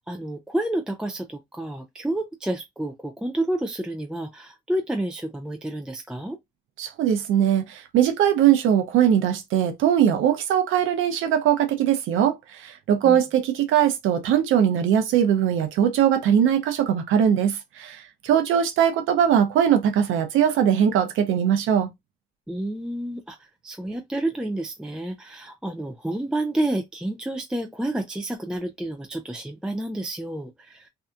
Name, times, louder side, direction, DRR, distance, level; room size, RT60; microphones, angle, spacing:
voice 1, 0.1-6.4 13.0-13.2 22.5-30.9, right 1 dB, 5° right, 0.4 m, -29 dB
voice 2, 6.8-12.4 12.6-21.9, right 9 dB, 85° right, 0.7 m, -21 dB
2.7 x 2.2 x 2.4 m
cardioid pair, 90°, 20 cm